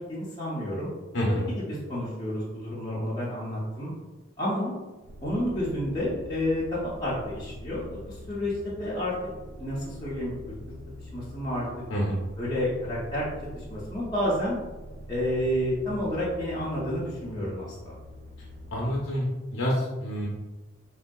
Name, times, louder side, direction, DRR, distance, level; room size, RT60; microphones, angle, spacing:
voice 1, 0.1-0.9 1.3-3.9 4.4-4.8 5.2-9.1 9.6-10.5 11.0-11.7 12.4-13.2 13.5-14.6 15.1-17.9, left 1 dB, 20° left, -9 dB, 0.5 m, -30 dB
voice 2, 1.1-1.4 11.9-12.2 18.7-19.3 19.5-20.3, equal, 70° left, -4 dB, 0.6 m, -27 dB
sound 1, 5.0-19.0, equal, 50° right, 0.4 m, -44 dB
3.3 x 2.6 x 2.2 m, 1.2 s
head